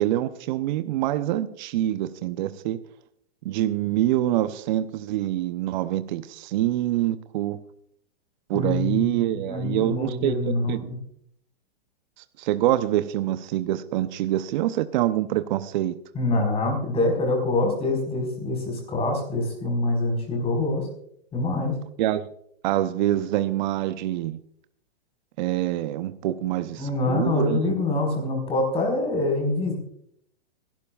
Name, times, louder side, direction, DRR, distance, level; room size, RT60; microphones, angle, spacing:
voice 1, 0.0-2.8 3.4-7.6 8.5-10.3 10.7-10.8 12.4-16.0 22.0-22.2 22.6-24.4 25.4-27.6, right 13 dB, 50° right, 12 dB, 0.7 m, -25 dB
voice 2, 8.5-11.0 16.1-20.9 21.3-21.8 26.8-29.7, left 2 dB, 20° left, 2 dB, 4.6 m, -25 dB
25.0 x 12.0 x 2.4 m, 0.70 s
hypercardioid pair, 135°, 31 cm